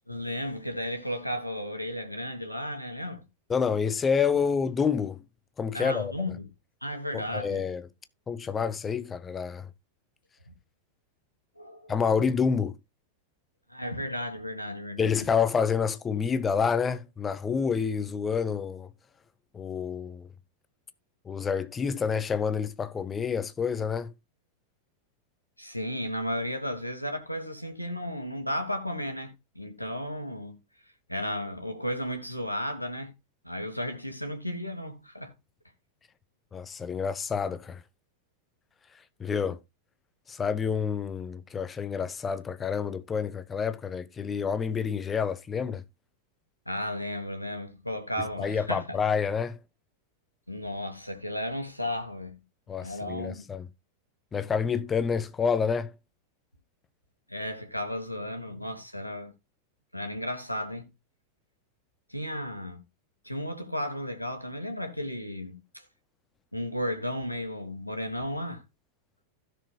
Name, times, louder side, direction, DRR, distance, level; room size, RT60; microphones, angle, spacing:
voice 1, 0.1-3.2 5.7-6.5 6.8-7.6 10.5-10.6 11.5-11.9 13.7-15.1 25.6-30.6 31.1-33.1 33.4-35.3 46.6-49.0 50.5-52.4 52.8-53.4 57.3-59.3 59.9-60.9 62.1-62.8 63.2-65.8 66.5-68.6, left 1 dB, 90° left, 1.5 m, -34 dB
voice 2, 3.5-5.2 5.6-6.1 7.1-7.9 8.3-9.7 11.9-12.8 15.0-18.9 19.5-20.3 21.3-24.1 36.5-37.8 39.2-39.6 40.3-45.8 48.4-49.6 52.7-53.7 54.3-55.9, left 6 dB, 20° left, 0.7 m, -28 dB
16.0 x 6.3 x 2.3 m
figure-of-eight pair, 90°, 0 cm